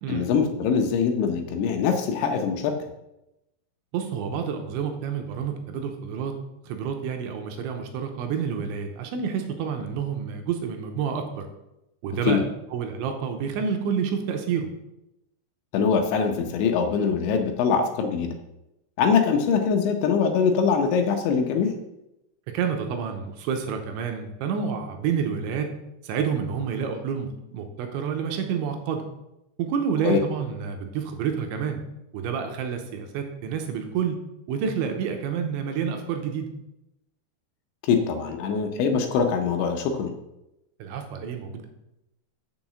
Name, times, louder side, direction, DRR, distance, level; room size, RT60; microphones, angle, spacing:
voice 1, 0.1-2.8 12.3-12.4 15.7-18.4 19.0-21.8 30.0-30.2 37.8-40.1, left 6 dB, 75° left, 5 dB, 2.9 m, -23 dB
voice 2, 3.9-6.4 6.6-11.5 12.0-12.4 12.7-14.7 22.5-25.7 26.0-29.0 29.6-31.8 32.1-34.2 34.5-36.5 40.8-41.7, right 7 dB, 80° right, 5 dB, 3.1 m, -29 dB
7.2 x 6.0 x 7.3 m, 0.90 s
omnidirectional pair, 5.7 m